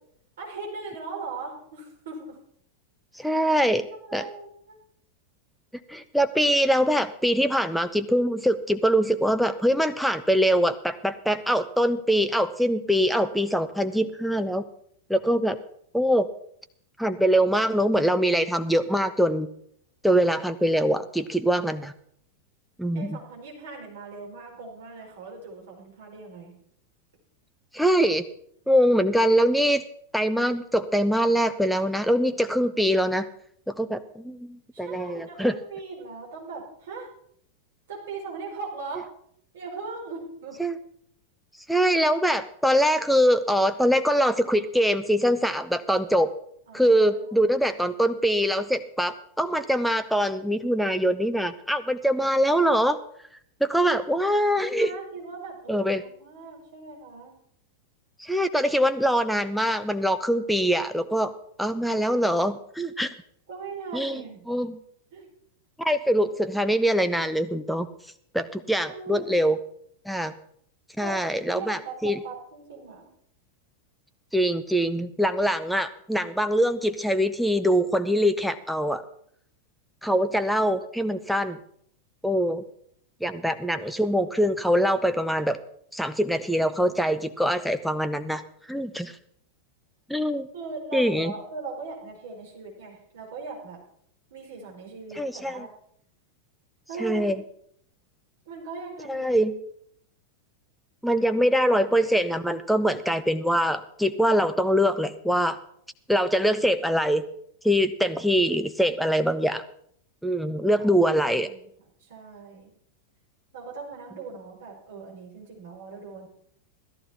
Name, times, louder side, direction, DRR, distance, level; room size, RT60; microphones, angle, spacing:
voice 1, 0.4-2.4 3.2-3.3 4.0-4.8 22.9-26.5 34.7-37.1 37.9-39.1 39.5-40.6 46.7-47.3 54.8-57.4 63.5-64.5 65.1-65.3 68.8-69.4 71.0-73.1 90.5-93.8 94.3-95.7 96.9-97.3 98.4-99.3 101.2-101.3 110.7-110.9 111.4-111.7 112.0-112.7 113.5-116.3, right 4 dB, 60° right, -1 dB, 4.8 m, -39 dB
voice 2, 3.2-3.9 4.1-4.2 5.9-14.6 15.1-15.6 15.9-16.3 17.0-19.5 20.0-21.9 22.8-23.2 27.7-28.2 28.7-29.8 30.1-33.3 33.7-35.5 40.6-40.8 41.7-46.3 46.7-53.0 53.6-54.9 55.7-56.0 58.2-61.3 61.6-63.1 63.9-64.2 64.5-64.7 65.8-67.9 68.3-69.6 70.0-70.3 71.0-72.2 74.3-79.0 80.0-81.6 82.2-82.6 83.2-85.6 85.9-88.4 88.7-89.1 90.1-90.5 90.9-91.3 95.2-95.7 97.0-97.4 99.1-99.5 101.0-105.6 106.1-107.2 107.6-109.6 110.2-111.5, equal, ahead, 10 dB, 0.9 m, -23 dB
15.5 x 13.5 x 4.3 m, 0.66 s
figure-of-eight pair, 90°, 0 cm